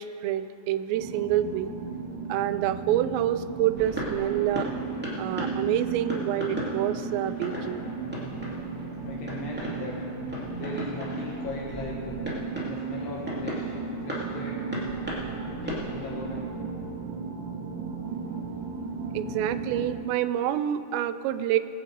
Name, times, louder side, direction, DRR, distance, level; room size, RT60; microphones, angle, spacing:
voice 1, 0.0-1.7 2.3-4.7 5.2-7.9 19.1-21.6, right 12 dB, 85° right, 12 dB, 2.8 m, -27 dB
sound 1, 0.9-20.0, right 4 dB, 65° right, 3.5 m, -35 dB
sound 2, 3.7-16.4, equal, 5° right, 1.2 m, -37 dB
voice 2, 9.0-10.0 10.6-12.3 12.7-13.8 14.0-14.6 15.4-16.5, left 3 dB, 75° left, -3 dB, 3.2 m, -38 dB
20.5 x 8.5 x 4.7 m, 2.6 s
omnidirectional pair, 5.0 m